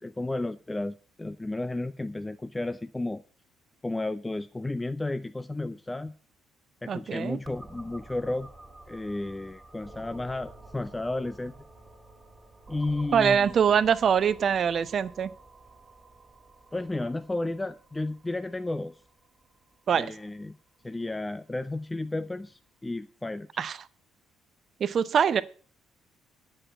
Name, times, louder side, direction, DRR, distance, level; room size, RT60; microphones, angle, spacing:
voice 1, 0.0-3.2 3.8-6.1 6.8-8.5 8.9-11.5 12.7-13.5 16.7-19.0 19.9-20.6 20.8-23.5, left 2 dB, 15° left, 12 dB, 0.5 m, -33 dB
voice 2, 6.9-7.4 13.1-15.3 19.9-20.1 23.6-23.8 24.8-25.4, right 7 dB, 45° right, 16 dB, 0.7 m, -24 dB
sound 1, 7.4-21.0, right 2 dB, 20° right, 2.6 m, -50 dB
9.9 x 7.5 x 7.4 m, 0.40 s
figure-of-eight pair, 45°, 0 cm